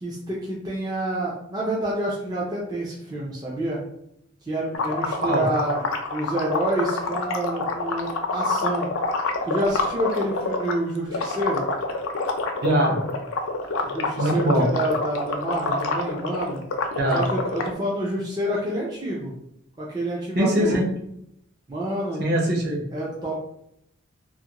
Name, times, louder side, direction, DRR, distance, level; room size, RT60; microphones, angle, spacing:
voice 1, 0.0-3.8 4.5-8.9 9.5-11.6 13.8-16.6 17.1-19.3 19.8-20.8 21.7-22.2 22.9-23.4, right 1 dB, 20° right, -5 dB, 0.4 m, -28 dB
sound 1, 4.7-10.7 11.1-17.7, left 3 dB, 80° left, 0.4 m, -27 dB
voice 2, 12.6-13.0 14.2-14.7 17.0-17.2 20.3-20.9 22.2-22.8, equal, 50° right, -2 dB, 0.7 m, -21 dB
2.5 x 2.5 x 2.8 m, 0.75 s
head